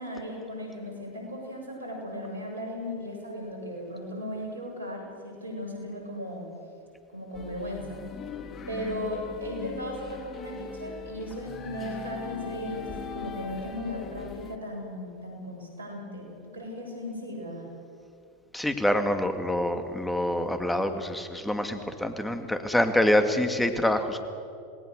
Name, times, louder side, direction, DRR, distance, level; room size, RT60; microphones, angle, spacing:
voice 1, 0.0-6.5 7.1-8.0 8.7-17.7, left 1 dB, 85° right, 1 dB, 7.4 m, -36 dB
sound 1, 7.3-14.6, left 6 dB, 30° left, 1.7 m, -40 dB
voice 2, 18.5-24.2, left 1 dB, 5° left, 7 dB, 2.3 m, -26 dB
28.0 x 19.5 x 6.7 m, 2.4 s
hypercardioid pair, 90°, 0 cm